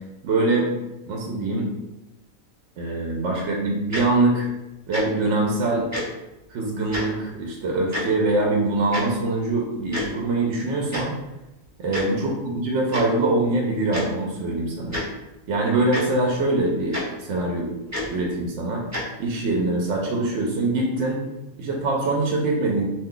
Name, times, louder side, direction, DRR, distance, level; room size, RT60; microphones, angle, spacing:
voice 1, 0.2-0.7 1.1-1.7 2.8-4.5 4.9-5.9 6.5-11.1 11.8-15.0 15.5-17.7 18.1-18.8 19.2-21.2 21.6-22.9, right 2 dB, 70° right, -1 dB, 0.8 m, -23 dB
Tick-tock, 3.9-4.0 4.9-5.0 5.9-6.0 6.9-7.0 7.9-8.0 8.9-9.0 9.9-10.1 10.9-11.0 11.9-12.0 12.9-13.0 13.9-14.0 14.9-15.0 15.9-16.0 16.9-17.0 17.9-18.1 18.9-19.0, left 1 dB, 20° right, 0.6 m, -28 dB
2.5 x 2.3 x 3.6 m, 0.95 s
omnidirectional pair, 1.4 m